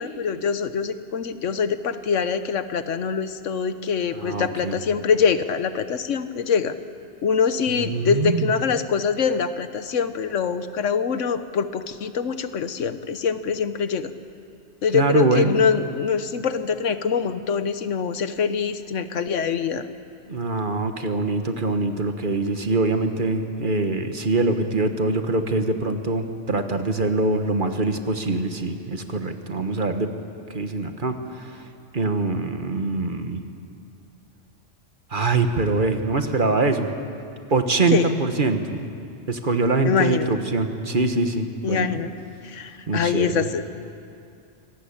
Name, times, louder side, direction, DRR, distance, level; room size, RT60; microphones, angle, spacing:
voice 1, 0.0-6.7 7.2-14.1 14.8-19.9 37.9-38.1 39.8-40.3 41.6-42.1 42.4-43.7, left 6 dB, 85° left, 11 dB, 1.3 m, -24 dB
voice 2, 4.1-4.8 7.8-8.5 14.9-15.5 20.3-30.1 30.5-31.5 31.9-33.4 35.1-36.9 37.5-38.8 39.3-42.0 42.9-43.5, right 3 dB, 45° right, 7 dB, 1.5 m, -23 dB
25.0 x 18.5 x 8.7 m, 2.5 s
omnidirectional pair, 1.2 m